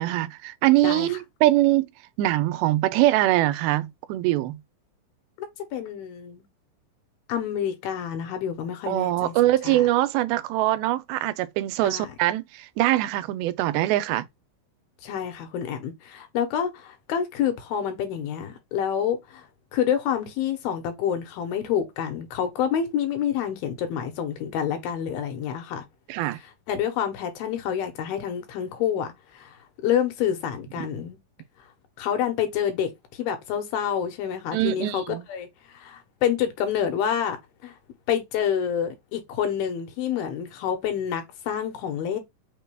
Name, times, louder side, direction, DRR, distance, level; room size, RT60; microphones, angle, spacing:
voice 1, 0.0-1.9 2.2-4.6 8.9-14.2 26.1-26.4 30.8-30.9 34.5-35.2, right 16 dB, 85° right, 2.4 m, -23 dB
voice 2, 5.4-6.4 7.3-9.3 9.6-9.8 11.8-12.1 15.0-19.5 19.7-25.8 26.7-29.1 29.4-29.5 29.8-31.2 32.0-35.5 35.7-37.4 37.6-37.7 38.1-42.2, left 9 dB, 85° left, 2.8 m, -28 dB
5.9 x 2.2 x 3.3 m
omnidirectional pair, 4.3 m